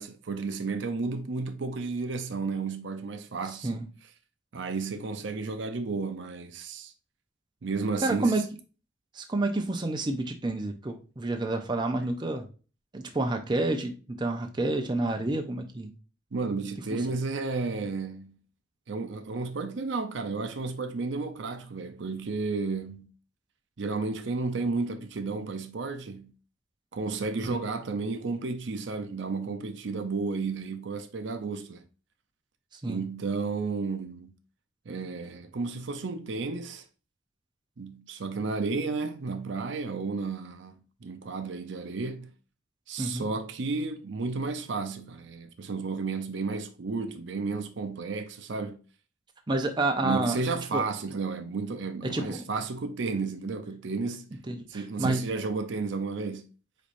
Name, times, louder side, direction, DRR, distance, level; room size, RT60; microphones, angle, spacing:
voice 1, 0.0-3.8 4.5-6.9 7.6-8.4 16.3-18.4 18.9-23.1 23.8-26.3 26.9-31.8 32.9-34.3 34.9-36.8 37.8-42.3 42.9-48.8 50.0-54.3 54.7-56.5, right 4 dB, 65° right, 0.5 m, -32 dB
voice 2, 8.0-8.4 9.1-12.5 12.9-15.9 27.5-27.6 32.8-33.0 43.0-43.3 49.5-50.4 50.7-50.8 52.0-52.4 54.5-55.2, right 2 dB, 20° right, 0.6 m, -29 dB
4.9 x 4.2 x 2.5 m
head